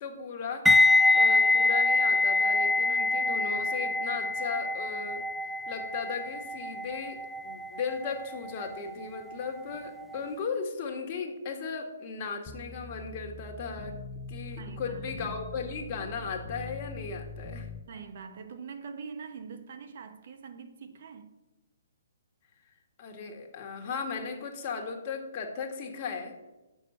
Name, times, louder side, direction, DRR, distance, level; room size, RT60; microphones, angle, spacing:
voice 1, 0.0-14.0 14.3-17.7 23.0-26.5, left 5 dB, 40° left, 1.7 m, -37 dB
sound 1, 0.7-9.6 9.9-10.2, left 2 dB, 5° right, 0.3 m, -25 dB
sound 2, 12.5-17.8, left 2 dB, 20° left, 0.7 m, -42 dB
voice 2, 14.6-15.4 17.9-21.4, right 5 dB, 60° right, 1.0 m, -44 dB
6.5 x 6.3 x 7.5 m
hypercardioid pair, 145°, 0 cm